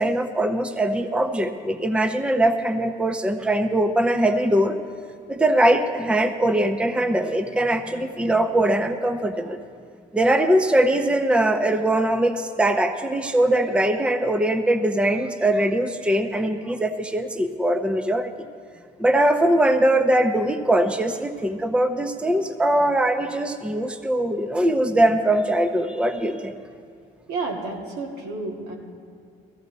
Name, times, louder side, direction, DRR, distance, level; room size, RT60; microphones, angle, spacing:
voice 1, 0.0-4.8 5.3-9.6 10.1-18.3 19.0-26.5, right 1 dB, 5° right, 8 dB, 0.7 m, -21 dB
voice 2, 27.3-28.8, right 3 dB, 85° right, 0 dB, 2.4 m, -30 dB
17.0 x 15.0 x 4.1 m, 2.4 s
cardioid pair, 110°, 17 cm